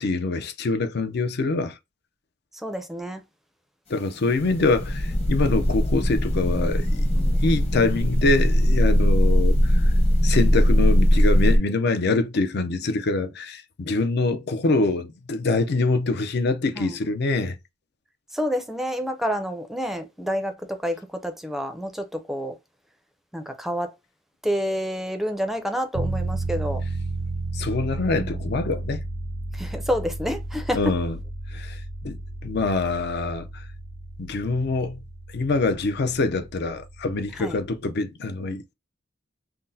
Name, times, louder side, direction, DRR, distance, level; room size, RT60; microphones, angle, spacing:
voice 1, 0.0-1.7 3.9-7.0 7.4-9.8 10.2-17.6 27.5-29.0 30.8-31.2 31.5-31.8 32.0-33.5 34.2-35.0 35.3-38.7, left 3 dB, 55° left, 0.5 m, -25 dB
voice 2, 2.6-3.2 7.1-7.6 16.7-17.0 18.3-21.0 21.2-22.5 23.3-23.9 24.4-26.8 28.1-28.4 29.5-30.8 37.4-37.6, equal, ahead, 0.5 m, -29 dB
sound 1, 4.2-11.6, equal, 30° left, 1.0 m, -20 dB
sound 2, 25.9-37.8, right 2 dB, 85° right, 0.6 m, -33 dB
5.8 x 2.0 x 2.6 m
head